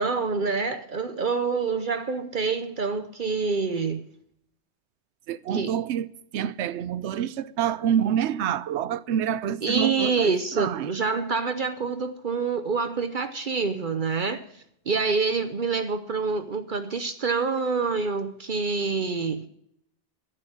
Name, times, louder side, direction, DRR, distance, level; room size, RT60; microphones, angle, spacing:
voice 1, 0.0-4.0 5.5-5.7 9.6-14.4 14.9-19.5, right 4 dB, 50° right, 0.9 m, -26 dB
voice 2, 5.3-6.1 6.3-10.9, right 9 dB, 90° right, 0.9 m, -27 dB
10.5 x 8.6 x 8.5 m
omnidirectional pair, 1.1 m